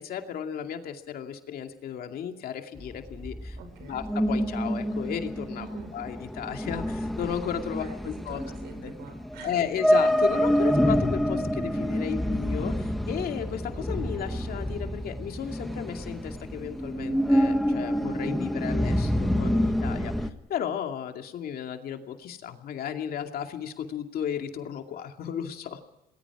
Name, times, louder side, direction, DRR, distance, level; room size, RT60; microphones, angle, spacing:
voice 1, 0.0-3.6 3.8-5.7 5.9-8.4 8.8-8.9 9.4-25.8, left 8 dB, 65° left, 5 dB, 2.4 m, -34 dB
sound 1, 2.8-20.3, equal, ahead, 1.5 m, -27 dB
voice 2, 3.5-4.0 5.6-5.9 7.8-9.7, right 4 dB, 80° right, 8 dB, 5.5 m, -46 dB
28.0 x 20.0 x 4.9 m, 0.90 s
cardioid pair, 110°, 17 cm